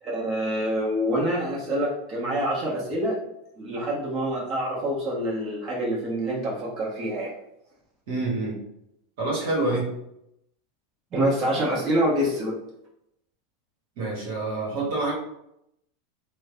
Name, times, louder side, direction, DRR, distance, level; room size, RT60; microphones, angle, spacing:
voice 1, 0.0-3.2 3.6-7.3 11.1-12.6, equal, 40° right, -5 dB, 1.2 m, -26 dB
voice 2, 8.1-8.6 9.2-9.9 14.0-15.1, right 2 dB, 65° right, -3 dB, 1.2 m, -27 dB
3.1 x 2.2 x 3.7 m, 0.79 s
hypercardioid pair, 95°, 0 cm